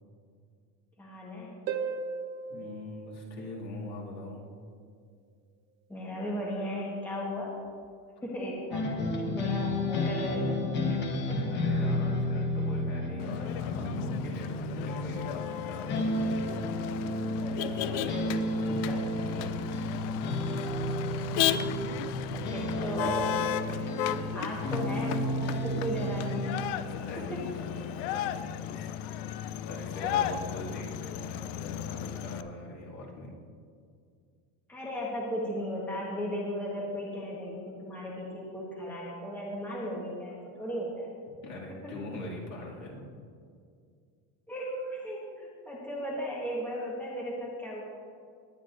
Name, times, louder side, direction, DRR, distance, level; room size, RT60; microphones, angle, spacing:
voice 1, 1.0-1.6 5.9-7.5 8.2-8.8 9.3-10.6 11.3-11.4 17.4-18.3 18.9-19.0 22.5-23.4 23.7-23.9 24.3-26.6 27.3-27.4 30.0-30.1 34.7-41.1 41.7-41.9 44.5-47.8, equal, 5° left, -5 dB, 1.2 m, -36 dB
Harp, 1.7-4.2 7.7-7.8, right 5 dB, 40° right, 0.9 m, -37 dB
voice 2, 2.5-4.4 11.5-16.3 18.7-18.8 19.2-19.6 20.7-22.3 26.9-28.9 29.3-33.3 41.4-43.0, left 1 dB, 40° left, -4 dB, 2.3 m, -42 dB
sound 1, 8.7-15.6 15.9-26.6, left 1 dB, 25° left, 1.0 m, -32 dB
Motor vehicle (road), 13.2-32.4, left 10 dB, 60° left, 0.5 m, -35 dB
20.0 x 9.5 x 2.5 m, 2.2 s
cardioid pair, 165°, 40 cm